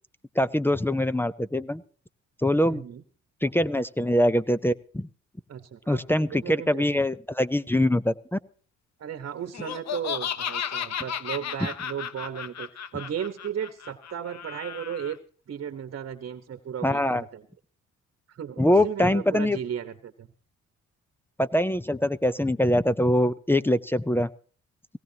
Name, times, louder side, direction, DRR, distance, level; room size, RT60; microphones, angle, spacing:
voice 1, 0.4-1.8 2.4-2.8 3.4-5.1 5.9-8.4 16.8-17.2 18.6-19.6 21.4-24.3, left 1 dB, 5° left, 16 dB, 0.6 m, -23 dB
voice 2, 2.7-3.0 5.5-6.0 6.4-6.9 9.0-15.2 15.5-17.5 18.3-20.3, right 8 dB, 50° right, 10 dB, 1.2 m, -35 dB
Laughter, 9.5-15.1, left 8 dB, 60° left, 1.0 m, -34 dB
17.5 x 17.0 x 2.9 m, 0.41 s
cardioid pair, 90°, 30 cm